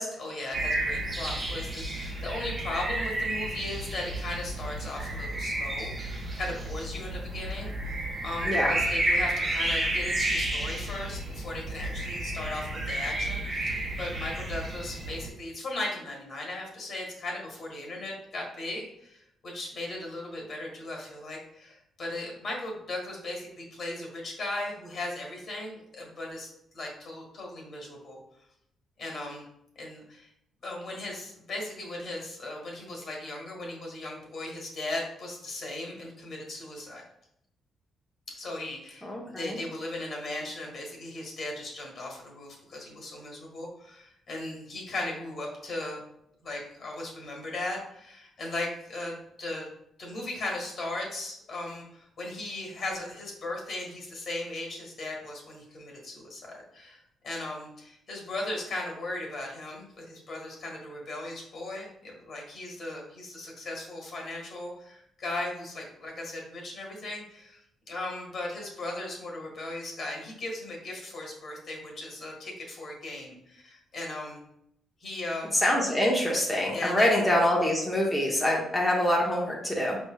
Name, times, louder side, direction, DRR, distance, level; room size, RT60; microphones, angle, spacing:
voice 1, 0.2-26.5 26.7-28.2 29.0-29.5 29.8-30.3 30.6-37.0 38.4-46.0 46.4-49.7 50.0-67.6 67.9-74.4 75.0-75.5 76.7-77.1, left 2 dB, 55° left, -1 dB, 1.5 m, -37 dB
sound 1, 0.5-15.3, right 1 dB, 25° right, 0.9 m, -31 dB
voice 2, 39.0-39.6 75.5-80.0, left 1 dB, 5° left, -3 dB, 0.8 m, -25 dB
5.1 x 3.2 x 2.2 m, 0.75 s
cardioid pair, 90°, 0 cm